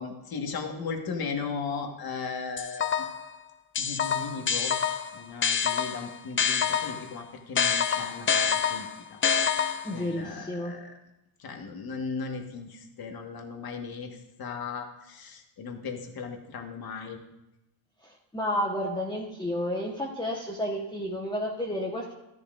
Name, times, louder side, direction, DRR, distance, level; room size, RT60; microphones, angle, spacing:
voice 1, 0.0-2.9 3.8-4.7 5.1-9.2 9.9-10.9 11.4-17.2, left 5 dB, 50° left, 3 dB, 1.6 m, -37 dB
sound 1, 2.6-3.3 3.8-7.1 7.6-10.0, left 7 dB, 30° left, 0.4 m, -27 dB
voice 2, 9.8-10.7 18.3-22.1, left 1 dB, 10° left, -3 dB, 1.3 m, -31 dB
12.5 x 11.0 x 2.6 m, 0.91 s
cardioid pair, 100°, 46 cm